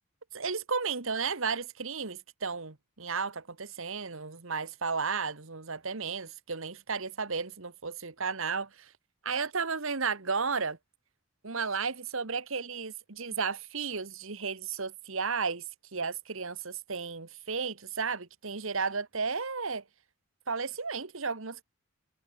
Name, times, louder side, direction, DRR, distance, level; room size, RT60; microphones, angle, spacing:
voice 1, 0.3-8.9 9.2-10.8 11.4-15.6 15.9-19.8 20.5-21.6, right 5 dB, 65° right, 1.5 m, -33 dB
head